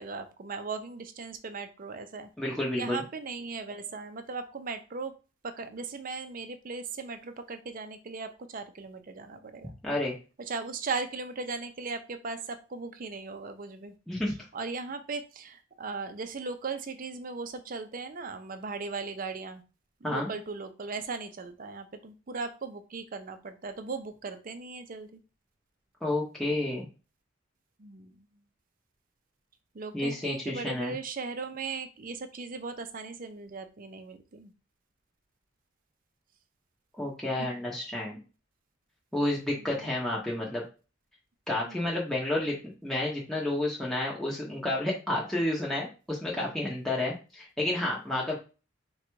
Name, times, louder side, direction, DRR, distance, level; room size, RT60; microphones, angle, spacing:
voice 1, 0.0-2.3 2.7-5.1 5.4-9.7 10.5-13.9 14.5-19.6 20.0-25.2 27.8-28.4 29.7-34.5 37.4-37.5 39.6-39.9 41.6-41.8, right 4 dB, 45° right, 8 dB, 0.5 m, -38 dB
voice 2, 2.4-3.0 9.8-10.1 14.1-14.3 20.0-20.3 26.0-26.9 29.9-30.9 37.0-38.2 39.1-40.6 41.5-42.6 42.8-48.4, left 1 dB, ahead, -4 dB, 0.8 m, -30 dB
3.8 x 2.3 x 4.5 m, 0.33 s
head